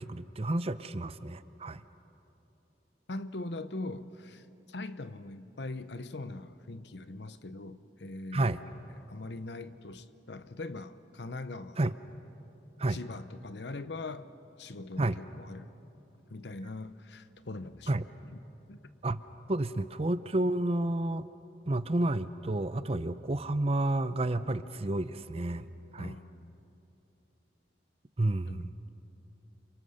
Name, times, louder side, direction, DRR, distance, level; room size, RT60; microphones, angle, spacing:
voice 1, 0.0-1.8 8.3-8.6 11.8-11.9 12.8-13.0 15.0-15.2 17.9-18.0 19.0-19.2 19.5-21.3 21.7-25.7 25.9-26.2 28.2-28.7, right 2 dB, 35° right, 0.7 m, -30 dB
voice 2, 3.1-11.8 12.9-14.3 14.6-15.7 16.3-18.0 18.3-18.4 18.7-18.8 26.0-26.6 28.5-28.8, left 2 dB, 70° left, 0.9 m, -42 dB
29.5 x 27.5 x 6.6 m
head